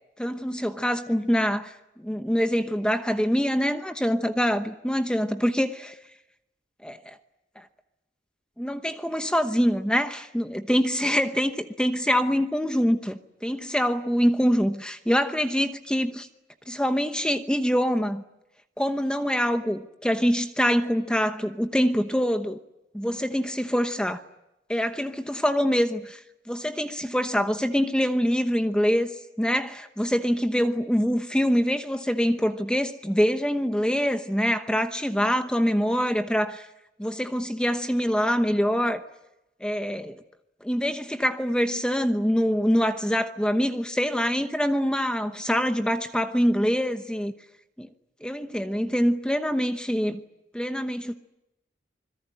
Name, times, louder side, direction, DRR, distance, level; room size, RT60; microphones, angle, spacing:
voice 1, 0.2-1.7 2.0-6.0 6.8-7.1 8.6-16.3 16.7-18.2 18.8-22.6 22.9-24.2 24.7-26.2 26.5-36.6 37.0-39.0 39.6-40.2 40.6-47.3 47.8-47.9 48.2-50.2 50.5-51.1, equal, 5° left, 1.0 m, -25 dB
26.0 x 21.5 x 9.9 m
head